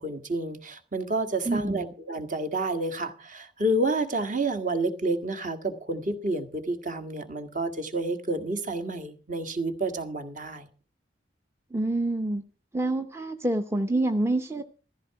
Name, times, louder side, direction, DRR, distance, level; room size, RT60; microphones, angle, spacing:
voice 1, 0.0-10.7, right 2 dB, 45° right, 1.7 m, -29 dB
voice 2, 1.5-1.9 11.7-12.4 12.7-14.6, right 2 dB, 15° right, 0.7 m, -27 dB
14.5 x 14.0 x 4.8 m
head